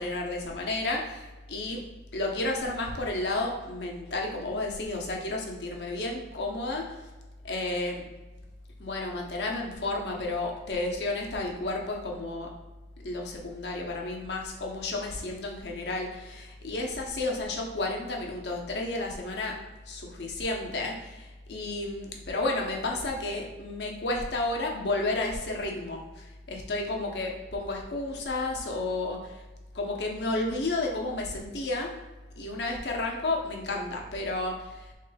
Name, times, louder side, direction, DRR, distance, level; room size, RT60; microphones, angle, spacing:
voice 1, 0.0-1.8 2.1-7.0 7.4-8.0 8.8-12.5 13.0-19.5 19.9-29.4 29.7-31.9 32.4-34.9, left 2 dB, 75° left, 0 dB, 0.8 m, -32 dB
4.9 x 3.7 x 2.3 m, 1.2 s
head